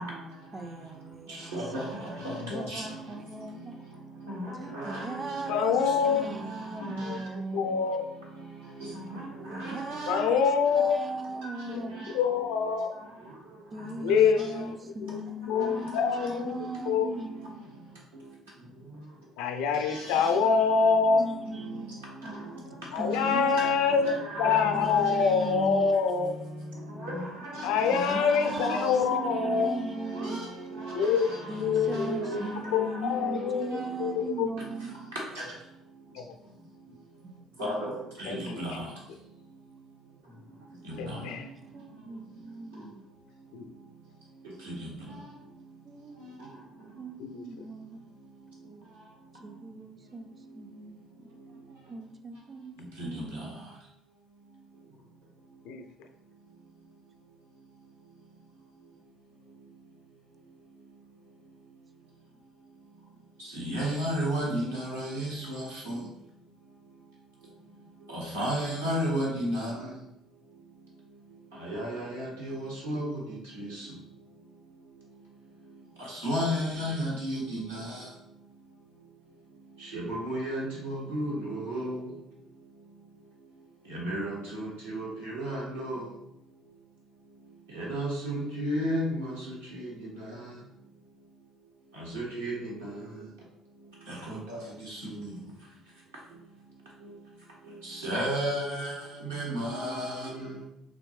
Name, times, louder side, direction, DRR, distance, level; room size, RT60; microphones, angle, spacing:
voice 1, 0.5-3.8 4.5-7.8 9.5-12.2 13.7-17.6 21.2-22.0 23.0-23.7 23.9-24.0 24.7-25.9 27.6-30.5 31.5-35.1 37.2-37.5 38.4-38.7 41.1-43.0 45.8-46.3 46.9-48.1 49.4-51.0 51.9-53.5 63.1-63.2, right 2 dB, 30° right, 7 dB, 0.4 m, -38 dB
voice 2, 1.5-1.8 2.7-2.8 4.9-5.0 9.6-9.7 24.4-24.6 30.3-30.4 37.6-37.8 38.6-38.7 63.6-65.3 68.3-69.7 71.7-71.9 72.2-72.3 72.9-73.0 76.2-77.6 80.1-80.6 81.1-82.0 84.0-84.3 84.9-85.1 85.3-85.9 87.9-88.3 88.6-89.0 92.1-92.5 98.0-98.9 99.3-100.2, equal, 90° right, -6 dB, 1.3 m, -30 dB
voice 3, 2.3-2.7 5.5-6.3 6.8-7.2 7.5-8.0 10.1-11.0 11.7-11.9 12.1-12.9 14.0-14.7 15.1-15.2 15.5-16.6 16.9-17.1 19.4-21.2 22.9-26.3 27.6-29.7 30.9-31.3 31.6-32.4 32.7-34.5 36.1-36.3 38.2-38.9 41.0-41.5 43.5-43.7 47.2-47.4 55.7-55.8, left 6 dB, 70° left, 5 dB, 0.4 m, -26 dB
4.0 x 3.1 x 3.2 m, 0.81 s
figure-of-eight pair, 50°, 0 cm